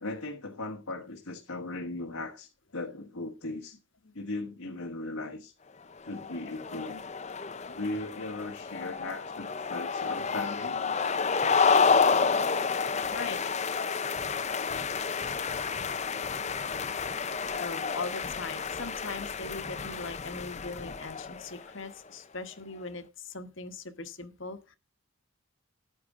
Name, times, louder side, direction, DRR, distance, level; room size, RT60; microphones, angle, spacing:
voice 1, 0.0-3.8 4.1-5.5 6.1-7.0 7.8-11.3, left 2 dB, 75° left, 1.4 m, -38 dB
sound 1, 6.0-21.7, left 5 dB, 30° left, 0.6 m, -30 dB
voice 2, 7.5-7.8 13.1-13.4 17.6-24.8, left 3 dB, 55° left, 1.4 m, -40 dB
12.5 x 9.4 x 3.7 m
head